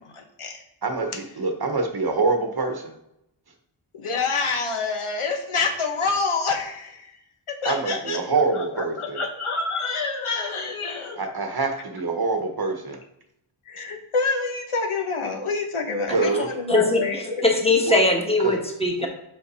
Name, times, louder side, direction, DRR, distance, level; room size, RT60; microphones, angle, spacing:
voice 1, 0.0-0.6 1.1-1.2 3.9-7.2 7.5-11.2 13.6-17.4, left 4 dB, 80° left, 4 dB, 1.2 m, -27 dB
voice 2, 0.8-2.9 7.6-9.2 11.2-13.0 16.1-16.5 17.8-18.0 18.4-18.5 19.0-19.1, right 3 dB, 50° right, 5 dB, 1.0 m, -25 dB
voice 3, 16.7-17.0 17.4-19.1, left 2 dB, 10° left, 1 dB, 1.3 m, -20 dB
5.7 x 5.5 x 4.1 m, 0.79 s
wide cardioid pair, 90°, 50 cm